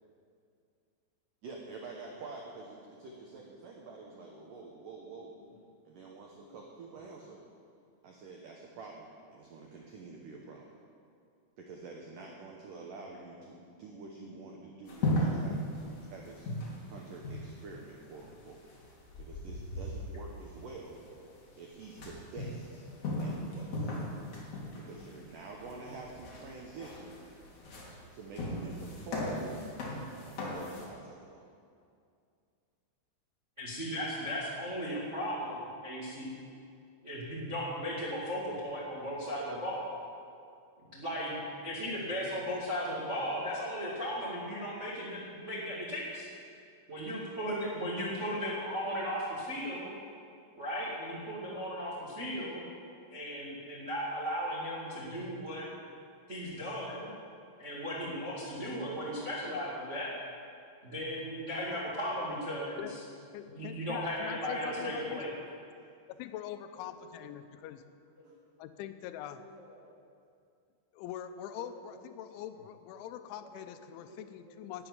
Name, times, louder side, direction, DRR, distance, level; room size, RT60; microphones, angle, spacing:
voice 1, 1.4-5.3 5.8-7.4 8.0-10.8 11.6-15.6 16.1-16.5 16.9-18.6 19.2-21.0 21.6-22.8 23.2-23.9 24.8-27.2 28.1-29.7 30.3-31.5 68.2-68.3, right 3 dB, 80° right, -1 dB, 1.9 m, -48 dB
sound 1, 14.9-30.9, left 1 dB, 45° left, 2.8 m, -37 dB
voice 2, 33.6-36.4 37.0-39.9 40.9-46.3 46.9-49.9 50.5-52.6 53.1-55.7 56.3-57.1 57.6-60.1 60.8-62.8 63.3-65.3 67.0-67.1 68.2-68.3 69.3-69.4 69.8-69.9 71.6-71.8 74.1-74.5, equal, 50° right, -6 dB, 0.8 m, -36 dB
voice 3, 63.3-65.2 66.1-67.8 68.6-69.4 70.9-74.9, left 11 dB, 85° left, 9 dB, 2.9 m, -43 dB
12.0 x 7.9 x 9.6 m, 2.4 s
omnidirectional pair, 5.5 m